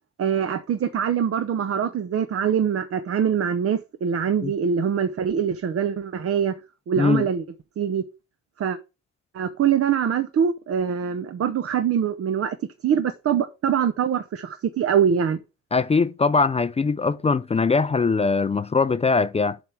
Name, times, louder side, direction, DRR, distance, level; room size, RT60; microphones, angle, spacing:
voice 1, 0.2-6.5 6.9-7.4 7.8-8.0 8.6-8.8 9.3-12.6 12.8-15.4, right 8 dB, 50° right, 0.8 m, -23 dB
voice 2, 7.0-7.3 15.7-19.6, left 4 dB, 20° left, 0.4 m, -21 dB
7.3 x 3.6 x 5.8 m
cardioid pair, 90°, 30 cm